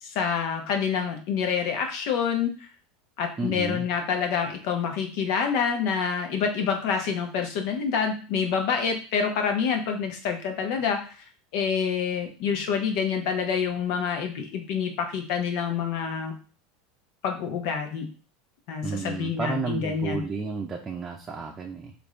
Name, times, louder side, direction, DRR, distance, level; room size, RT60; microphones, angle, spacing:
voice 1, 0.0-2.5 3.2-11.2 11.5-16.3 17.2-18.1 18.7-20.2, left 6 dB, 65° left, 4 dB, 0.9 m, -27 dB
voice 2, 3.4-3.9 18.8-21.9, right 4 dB, 25° right, 0 dB, 0.6 m, -32 dB
3.7 x 2.5 x 3.2 m, 0.37 s
hypercardioid pair, 90°, 0 cm